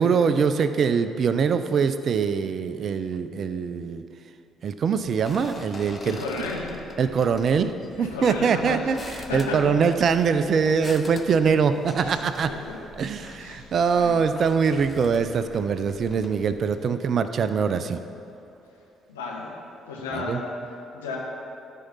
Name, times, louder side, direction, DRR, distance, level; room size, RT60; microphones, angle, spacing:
voice 1, 0.0-4.0 4.6-6.2 7.0-12.5 13.0-18.0 20.1-20.4, right 6 dB, 50° right, 11 dB, 0.5 m, -23 dB
sound 1, 5.0-16.8, left 3 dB, 30° left, 0.9 m, -44 dB
voice 2, 6.0-6.7 8.0-8.8 9.2-9.7 12.0-12.8 13.2-14.2 19.1-19.5 19.9-20.4 20.9-21.2, left 3 dB, 80° left, -2 dB, 1.3 m, -34 dB
13.5 x 4.6 x 5.5 m, 2.7 s
figure-of-eight pair, 45°, 0 cm